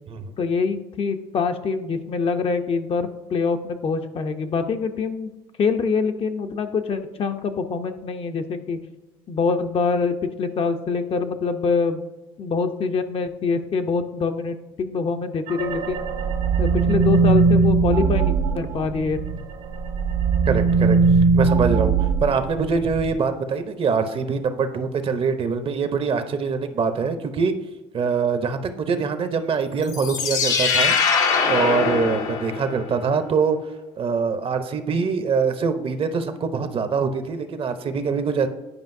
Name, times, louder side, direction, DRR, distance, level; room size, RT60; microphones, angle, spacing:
voice 1, 0.4-5.3 5.6-8.8 9.3-12.0 12.4-16.1 16.6-19.2, left 5 dB, 45° left, 7 dB, 0.6 m, -25 dB
sound 1, 15.5-19.4 19.7-23.1, right 4 dB, 80° right, 1.2 m, -20 dB
voice 2, 20.5-21.0 21.3-21.9 22.2-27.5 27.9-30.9 31.5-33.6 34.0-38.5, right 5 dB, 45° right, 9 dB, 0.7 m, -24 dB
sound 2, 29.8-33.0, left 5 dB, 75° left, 1.0 m, -22 dB
9.7 x 5.1 x 2.6 m, 1.1 s
supercardioid pair, 85°, 13 cm